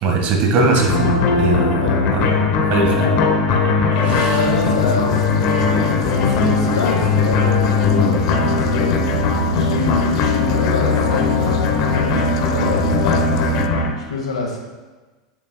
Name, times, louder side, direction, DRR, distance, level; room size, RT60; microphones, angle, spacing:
voice 1, 0.0-2.3 2.7-3.1 3.5-3.6 4.1-4.5, right 3 dB, 50° right, 1 dB, 1.6 m, -20 dB
sound 1, 0.7-13.9, left 4 dB, 50° left, 1.0 m, -18 dB
voice 2, 3.9-9.0 9.5-13.6 14.0-14.6, left 3 dB, 90° left, 0 dB, 1.7 m, -26 dB
sound 2, 4.2-13.7, left 10 dB, 70° left, 0.4 m, -31 dB
8.6 x 7.1 x 2.3 m, 1.3 s
hypercardioid pair, 105°, 3 cm